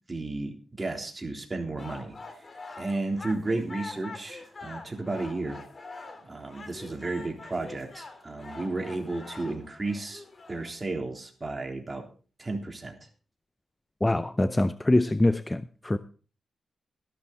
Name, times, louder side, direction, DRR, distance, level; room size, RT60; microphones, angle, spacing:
voice 1, 0.1-2.4 2.8-5.6 6.2-10.2 10.5-12.1 12.4-13.0, right 2 dB, 25° right, 3.6 m, -33 dB
sound 1, 1.8-10.7, left 3 dB, 40° left, 2.8 m, -44 dB
voice 2, 14.0-16.0, left 1 dB, 15° left, 0.6 m, -24 dB
13.5 x 12.0 x 4.2 m
cardioid pair, 90°, 0 cm